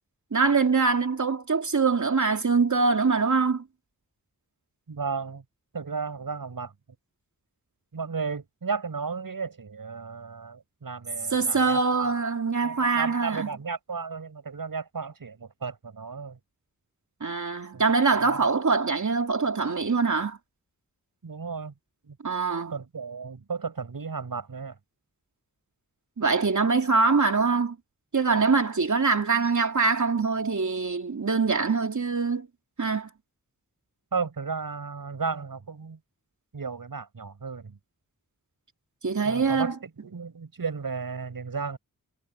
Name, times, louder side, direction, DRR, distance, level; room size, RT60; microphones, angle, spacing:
voice 1, 0.3-3.6 11.3-13.5 17.2-20.4 22.2-22.8 26.2-27.8 28.1-32.5 32.8-33.1 39.0-39.8, right 4 dB, 55° right, 3.0 m, -24 dB
voice 2, 4.9-5.4 5.7-6.7 7.9-12.1 12.6-16.4 17.7-17.8 18.2-18.4 21.2-21.7 22.0-22.1 22.7-24.7 34.1-36.0 36.5-37.8 39.2-41.8, right 5 dB, 75° right, 6.2 m, -34 dB
wide cardioid pair, 55°, 35 cm